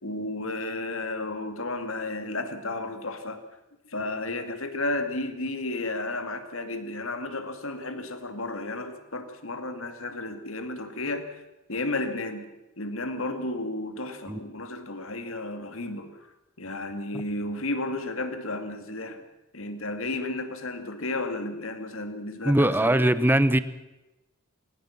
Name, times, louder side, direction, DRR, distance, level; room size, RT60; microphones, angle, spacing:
voice 1, 0.0-3.4 3.9-11.4 11.7-12.5 12.8-16.2 16.6-19.2 19.5-23.0, left 2 dB, 75° left, 8 dB, 2.3 m, -33 dB
voice 2, 22.4-23.6, right 1 dB, 10° right, 14 dB, 0.8 m, -21 dB
19.0 x 19.0 x 7.3 m, 0.98 s
head